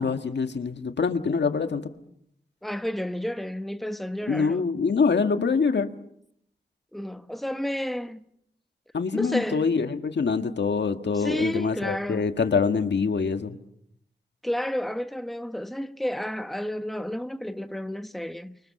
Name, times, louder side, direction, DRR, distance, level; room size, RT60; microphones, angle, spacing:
voice 1, 0.0-1.8 4.3-5.9 8.9-13.6, left 5 dB, 80° left, 1.7 m, -25 dB
voice 2, 2.6-4.8 6.9-8.2 9.1-9.7 11.1-12.3 14.4-18.6, equal, ahead, 1.1 m, -31 dB
29.5 x 24.0 x 6.6 m
cardioid pair, 55°, 18 cm